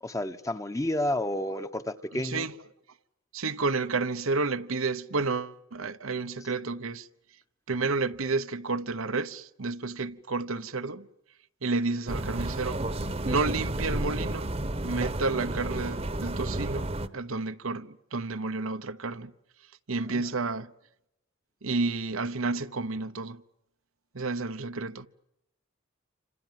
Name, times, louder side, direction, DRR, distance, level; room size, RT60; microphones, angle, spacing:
voice 1, 0.0-2.5 20.1-20.3, left 1 dB, 15° left, 1.0 m, -31 dB
voice 2, 2.1-2.5 3.3-7.1 7.7-11.1 11.6-12.8 13.2-14.5 14.8-19.3 19.9-20.7 21.6-23.4 24.1-25.1, right 3 dB, 85° right, 1.1 m, -31 dB
sound 1, 12.1-17.1, right 1 dB, 30° right, 1.1 m, -31 dB
28.5 x 26.0 x 7.7 m
head